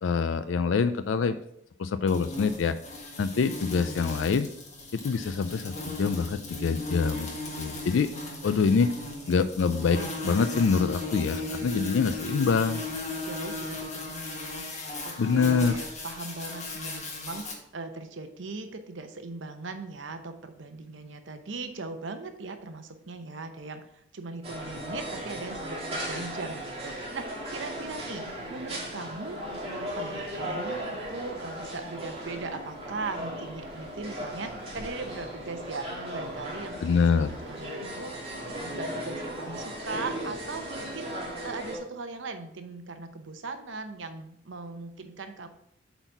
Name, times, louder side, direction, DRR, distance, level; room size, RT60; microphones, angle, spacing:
voice 1, 0.0-1.4 1.8-2.7 3.2-4.5 4.9-7.3 7.6-8.1 8.4-8.9 9.3-12.8 15.2-15.8 36.8-37.3, left 5 dB, 80° left, 11 dB, 0.4 m, -25 dB
sound 1, 2.1-17.5, left 2 dB, 35° left, 1.5 m, -37 dB
voice 2, 3.8-4.2 8.1-9.4 13.2-14.6 15.0-28.2 28.5-38.2 38.6-41.1 41.4-45.5, right 3 dB, 80° right, 8 dB, 0.8 m, -39 dB
sound 2, 24.4-41.8, equal, 30° right, 2.1 m, -37 dB
8.0 x 4.1 x 4.6 m, 0.74 s
head